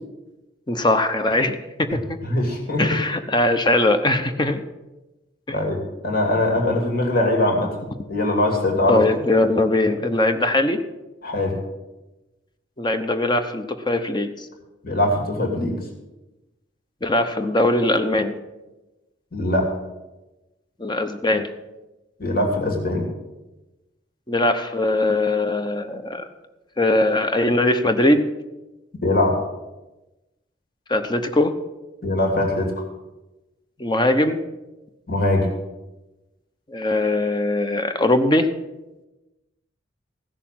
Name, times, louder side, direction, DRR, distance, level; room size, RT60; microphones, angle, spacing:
voice 1, 0.7-2.2 2.8-4.6 5.5-5.6 8.9-10.8 12.8-14.5 17.0-18.3 20.8-21.5 24.3-26.2 26.8-28.2 30.9-31.5 33.8-34.4 36.7-38.5, left 1 dB, 25° left, 8 dB, 0.9 m, -20 dB
voice 2, 2.2-3.0 5.5-7.7 8.1-9.0 11.2-11.6 14.8-15.8 19.3-19.7 22.2-23.1 29.0-29.4 32.0-32.8 35.1-35.5, left 1 dB, 50° left, 1 dB, 2.6 m, -21 dB
16.0 x 6.7 x 7.5 m, 1.0 s
head